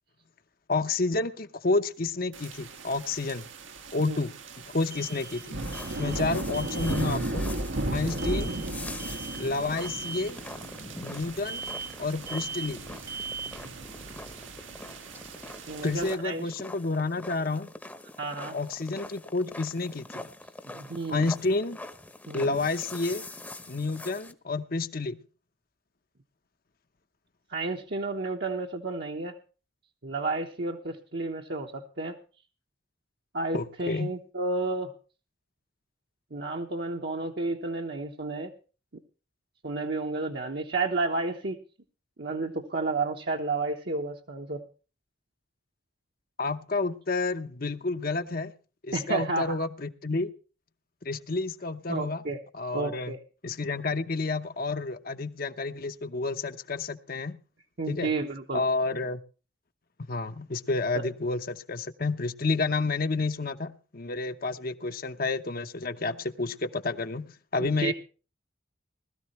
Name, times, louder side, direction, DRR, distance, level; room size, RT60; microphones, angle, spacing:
voice 1, 0.7-3.4 3.9-4.3 4.6-5.6 6.0-7.5 7.9-8.5 9.4-10.4 10.9-11.6 12.0-12.8 15.8-17.7 18.5-20.3 21.1-21.8 22.3-23.2 23.7-25.2 33.5-34.1 46.4-48.5 48.8-50.3 51.0-52.2 52.5-53.1 53.4-57.4 57.9-58.1 58.5-59.2 60.1-67.3 67.5-67.9, left 3 dB, 50° left, 0.9 m, -30 dB
sound 1, 1.6-1.7 4.9-5.5 5.7-6.3 6.5-7.0 8.2-8.7 9.0-9.5 9.8-10.3 11.4-12.0 12.3-12.8 13.1-13.6, right 5 dB, 15° right, 0.8 m, -39 dB
sound 2, 2.3-16.1, right 2 dB, 85° right, 1.8 m, -36 dB
sound 3, 5.0-24.3, left 2 dB, 10° left, 0.9 m, -44 dB
voice 2, 15.7-16.5 18.2-18.6 20.7-21.3 22.3-22.6 27.5-29.4 30.0-32.2 33.3-34.9 36.3-38.5 39.6-41.6 42.2-44.6 48.9-49.6 51.9-52.4 52.7-53.2 57.8-58.6 60.9-61.0 67.6-67.9, right 3 dB, 60° right, 1.1 m, -31 dB
20.0 x 13.5 x 3.2 m
head